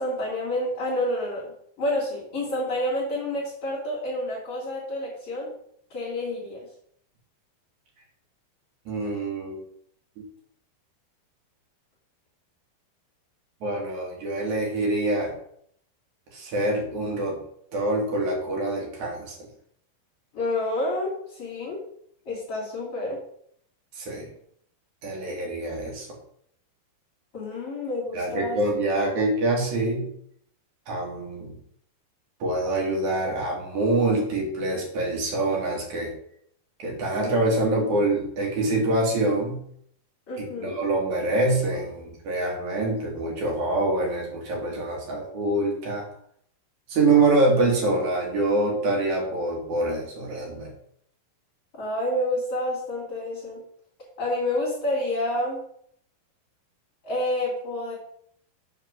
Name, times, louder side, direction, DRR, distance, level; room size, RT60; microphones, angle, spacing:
voice 1, 0.0-1.5 1.8-5.5 5.9-6.6 20.3-21.8 22.3-23.2 27.3-28.6 40.3-40.8 51.8-53.6 54.2-55.6 57.0-57.9, left 1 dB, 35° left, -8 dB, 3.7 m, -28 dB
voice 2, 8.8-9.6 13.6-15.3 16.3-17.4 17.7-19.4 23.9-24.3 25.0-26.1 28.1-30.1 30.9-31.5 32.4-36.1 36.8-39.6 40.4-46.1 46.9-50.7, right 2 dB, 50° right, -1 dB, 3.1 m, -25 dB
7.7 x 4.8 x 6.3 m, 0.67 s
omnidirectional pair, 5.1 m